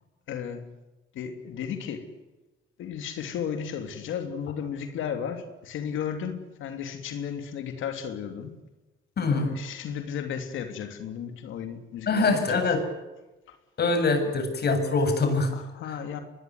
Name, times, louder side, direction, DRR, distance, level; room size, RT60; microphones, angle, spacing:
voice 1, 0.3-0.7 1.1-2.1 2.8-8.5 9.3-12.6 13.5-13.6 14.2-14.3 15.5-16.2, left 8 dB, 85° left, 3.1 m, -34 dB
voice 2, 9.2-9.5 12.1-12.8 13.8-15.5 15.8-16.0, left 3 dB, 55° left, 7.8 m, -24 dB
25.0 x 21.5 x 9.7 m
cardioid pair, 90°, 20 cm